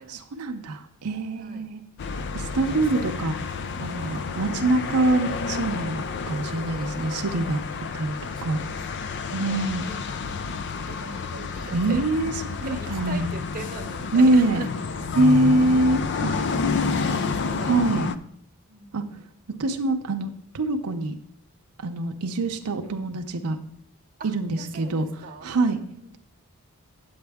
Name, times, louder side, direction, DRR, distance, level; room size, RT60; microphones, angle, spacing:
voice 1, 0.0-1.8 2.3-3.3 3.8-7.6 7.9-8.2 8.4-8.6 9.3-9.8 11.7-13.3 14.1-14.7 15.1-16.4 17.6-18.1 18.9-19.0 19.6-21.1 21.8-23.6 24.2-25.0 25.4-25.8, right 2 dB, 85° right, 5 dB, 0.6 m, -24 dB
sound 1, 2.0-18.2, left 4 dB, 50° left, 0.4 m, -30 dB
voice 2, 2.6-3.1 4.0-4.8 8.3-12.0 12.6-14.7 15.2-15.3 16.5-17.9 18.7-19.2 24.2-26.1, right 3 dB, 40° right, 3 dB, 0.8 m, -41 dB
8.7 x 8.0 x 3.5 m, 0.67 s
head